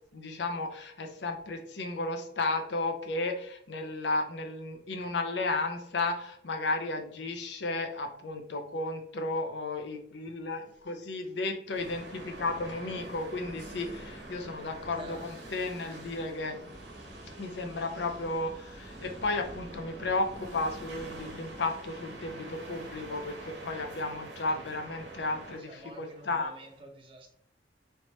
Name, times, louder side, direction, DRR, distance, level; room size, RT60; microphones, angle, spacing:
voice 1, 0.1-16.6 17.4-26.5, left 2 dB, 80° left, 5 dB, 0.6 m, -33 dB
sound 1, 11.7-26.8, right 1 dB, 90° right, 1.2 m, -45 dB
voice 2, 14.9-15.5 24.5-24.8 25.6-27.3, right 1 dB, 30° right, 3 dB, 0.7 m, -49 dB
3.3 x 3.1 x 4.1 m, 0.66 s
head